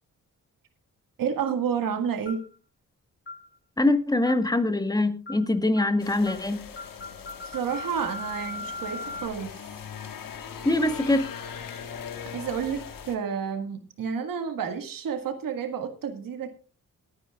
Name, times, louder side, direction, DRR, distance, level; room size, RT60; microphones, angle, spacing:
voice 1, 1.2-2.4 7.4-9.6 12.3-16.5, right 7 dB, 85° right, 6 dB, 1.9 m, -30 dB
sound 1, 2.3-2.5 3.3-3.5 4.3-4.5 5.3-5.5 5.8-6.0 6.3-6.5 6.8-9.3, left 2 dB, 35° left, 2.3 m, -38 dB
voice 2, 3.8-6.6 10.6-11.2, left 2 dB, 10° left, 9 dB, 1.5 m, -23 dB
sound 2, 6.0-13.2, left 7 dB, 80° left, 1.6 m, -40 dB
22.0 x 9.6 x 2.4 m, 0.36 s
cardioid pair, 90°, 33 cm